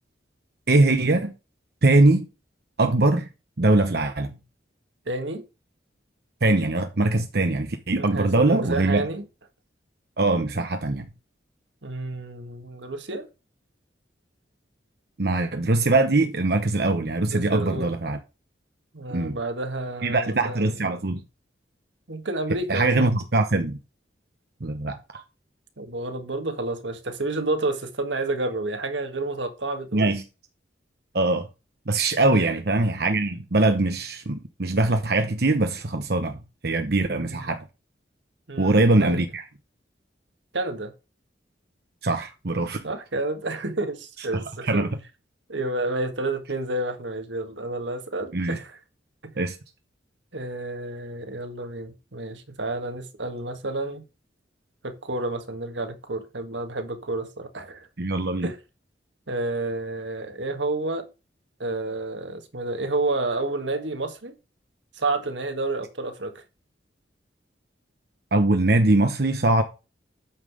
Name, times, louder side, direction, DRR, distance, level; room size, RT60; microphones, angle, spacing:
voice 1, 0.7-1.3 1.8-2.3 2.8-3.3 3.6-4.3 6.4-9.1 10.2-11.1 15.2-18.2 19.1-19.4 20.0-21.2 22.7-23.8 24.6-25.2 29.9-30.2 31.1-31.5 31.9-37.6 38.6-39.4 42.0-42.8 44.6-44.9 48.3-48.6 49.4-49.6 58.0-58.5 68.3-69.6, right 2 dB, 60° right, 0.9 m, -22 dB
voice 2, 5.0-5.4 8.0-9.2 11.8-13.3 17.2-17.9 18.9-20.7 22.1-23.1 25.8-30.1 32.3-32.5 37.1-37.5 38.5-39.2 40.5-40.9 42.8-44.8 45.5-48.8 49.2-49.3 50.3-54.0 54.8-57.9 58.4-58.6 59.3-61.1 61.6-64.4 64.9-66.4, right 2 dB, 85° right, 1.7 m, -30 dB
8.9 x 5.7 x 4.9 m
head